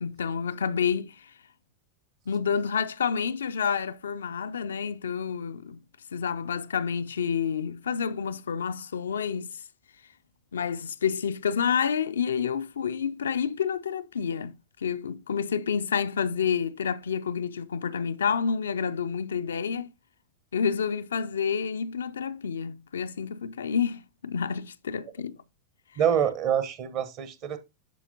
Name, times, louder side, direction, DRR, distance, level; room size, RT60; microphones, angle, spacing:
voice 1, 0.0-1.3 2.3-5.8 6.1-9.6 10.5-19.9 20.5-25.4, left 7 dB, 70° left, 0.3 m, -29 dB
voice 2, 26.0-27.6, right 9 dB, 40° right, 0.9 m, -26 dB
7.5 x 6.0 x 2.7 m
figure-of-eight pair, 90°, 0 cm